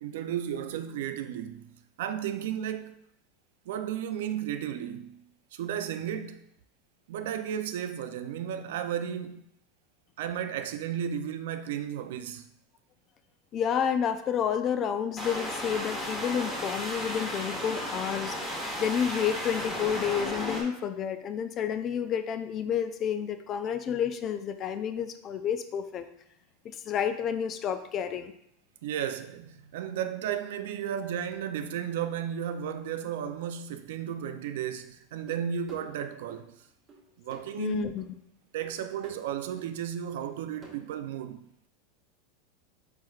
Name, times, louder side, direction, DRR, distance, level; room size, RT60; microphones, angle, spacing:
voice 1, 0.0-1.7 2.0-3.0 3.7-5.2 5.5-6.4 7.1-9.4 10.2-12.5 28.8-36.5 37.2-37.9 38.5-41.5, right 9 dB, 80° right, 0.4 m, -34 dB
voice 2, 13.5-18.4 18.8-26.1 26.6-28.3 37.6-38.0, left 8 dB, 35° left, 0.3 m, -30 dB
sound 1, 15.2-20.6, equal, 15° left, 1.1 m, -34 dB
sound 2, 35.3-36.4 36.9-37.6 38.0-38.2 38.6-39.3 39.6-39.7 40.2-40.7, right 4 dB, 25° right, 1.1 m, -52 dB
4.6 x 4.4 x 2.4 m
supercardioid pair, 145°, 0 cm